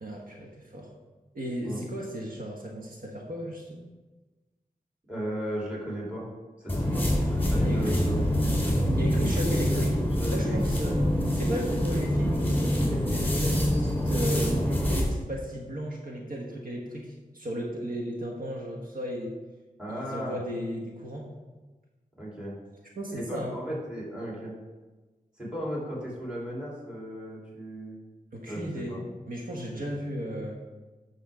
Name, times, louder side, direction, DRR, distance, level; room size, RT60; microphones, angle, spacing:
voice 1, 0.0-0.9 1.3-3.8 7.6-7.9 9.0-9.9 10.3-19.3 19.9-21.3 22.9-23.6 28.3-29.0 29.3-30.6, equal, 70° right, -1 dB, 1.3 m, -35 dB
voice 2, 5.1-6.3 6.6-8.8 9.2-9.8 10.2-10.9 19.8-20.4 22.2-22.5 23.1-24.5 25.4-28.0 28.5-29.0 29.7-29.8, equal, 5° right, -5 dB, 3.1 m, -36 dB
sound 1, 6.7-15.1, equal, 10° left, 2.8 m, -25 dB
10.5 x 6.4 x 3.6 m, 1.2 s
wide cardioid pair, 95°, 15 cm